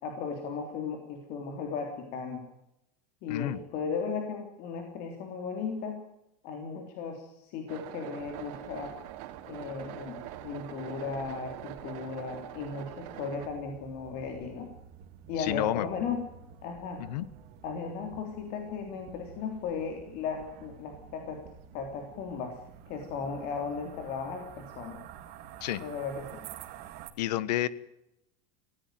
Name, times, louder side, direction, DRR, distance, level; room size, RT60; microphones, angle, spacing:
voice 1, 0.0-2.4 3.2-6.0 6.4-8.9 9.5-14.7 15.3-16.2 16.6-17.0 17.6-21.4 21.7-22.6 22.9-25.0 25.8-26.4, left 5 dB, 50° left, 3 dB, 3.5 m, -36 dB
voice 2, 3.3-3.6 15.4-15.9 17.0-17.3 25.6-25.8 27.2-27.7, left 13 dB, 90° left, 18 dB, 1.3 m, -30 dB
sound 1, 7.7-13.5, right 13 dB, 65° right, 3.0 m, -44 dB
sound 2, 8.2-27.1, right 9 dB, 50° right, 2.5 m, -51 dB
19.5 x 16.5 x 9.2 m, 0.86 s
supercardioid pair, 150°, 21 cm